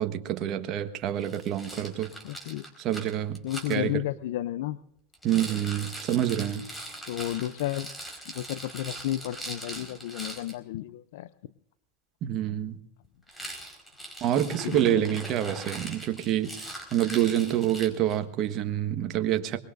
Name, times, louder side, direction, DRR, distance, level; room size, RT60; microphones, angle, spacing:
voice 1, 0.0-2.1 2.8-3.4 3.7-3.9 5.2-6.6 12.2-12.8 14.2-19.6, right 11 dB, 45° right, 8 dB, 1.4 m, -27 dB
Rattle, 1.2-3.8 5.1-10.5 13.3-18.2, right 1 dB, 5° left, 4.9 m, -41 dB
voice 2, 2.2-2.7 3.4-4.8 7.1-7.9 8.3-11.5 14.6-15.0, left 13 dB, 70° left, 14 dB, 0.6 m, -32 dB
23.5 x 21.0 x 2.6 m, 0.76 s
hypercardioid pair, 110°, 0 cm